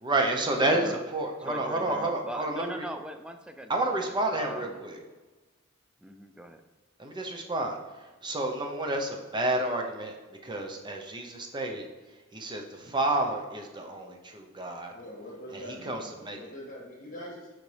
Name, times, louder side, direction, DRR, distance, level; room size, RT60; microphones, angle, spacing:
voice 1, 0.0-2.8 3.7-5.0 7.0-7.8 8.2-10.2 10.4-11.9 12.3-14.9 15.9-16.4, right 2 dB, 25° right, 2 dB, 0.7 m, -30 dB
voice 2, 0.6-1.0 1.4-4.8 6.0-6.6 15.8-15.9, right 1 dB, 5° right, 7 dB, 0.3 m, -40 dB
voice 3, 14.9-17.5, equal, 40° left, -3 dB, 2.0 m, -43 dB
6.8 x 4.9 x 3.3 m, 1.3 s
head